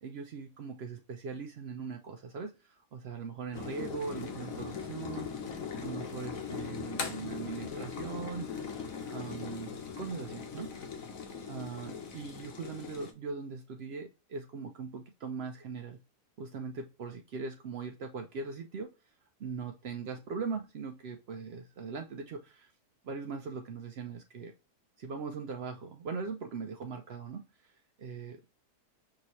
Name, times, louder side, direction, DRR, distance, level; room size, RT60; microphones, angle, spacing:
voice 1, 0.0-5.3 5.8-8.5 9.1-10.7 11.5-16.0 16.4-18.9 19.4-22.7 23.0-24.5 25.0-28.4, right 5 dB, 80° right, 4 dB, 0.5 m, -40 dB
sound 1, 3.5-13.1, left 6 dB, 60° left, 1.2 m, -40 dB
6.1 x 2.8 x 3.1 m, 0.29 s
omnidirectional pair, 1.7 m